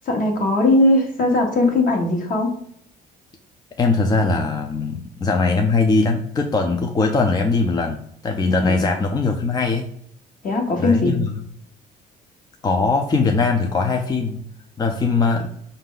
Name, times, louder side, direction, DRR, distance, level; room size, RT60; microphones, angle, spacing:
voice 1, 0.0-2.5 8.7-8.8 10.4-11.2, left 2 dB, 50° left, 2 dB, 1.2 m, -19 dB
voice 2, 3.8-9.9 10.8-11.3 12.6-14.4 14.8-15.5, left 3 dB, 25° left, 3 dB, 0.5 m, -20 dB
5.1 x 2.7 x 3.8 m, 0.67 s
cardioid pair, 110°, 17 cm